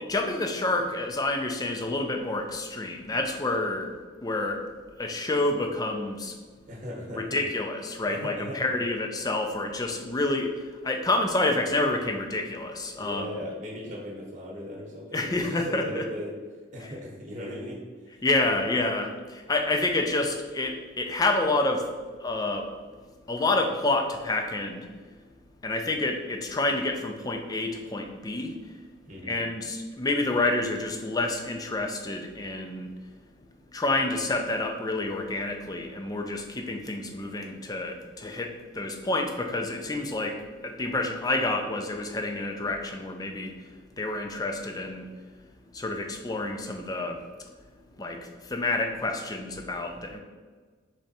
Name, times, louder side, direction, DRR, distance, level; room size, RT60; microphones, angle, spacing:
voice 1, 0.0-4.7 5.0-6.4 7.2-13.3 15.1-16.0 16.8-16.9 18.2-21.9 22.2-22.7 23.3-24.9 25.6-28.6 29.2-32.9 33.7-45.1 45.7-47.2 48.0-50.2, left 2 dB, 20° left, 4 dB, 0.4 m, -28 dB
voice 2, 6.7-7.4 8.1-8.7 12.9-16.3 16.7-18.2 18.6-18.9 29.0-29.4, equal, 35° right, -3 dB, 1.0 m, -38 dB
3.8 x 3.4 x 4.1 m, 1.5 s
head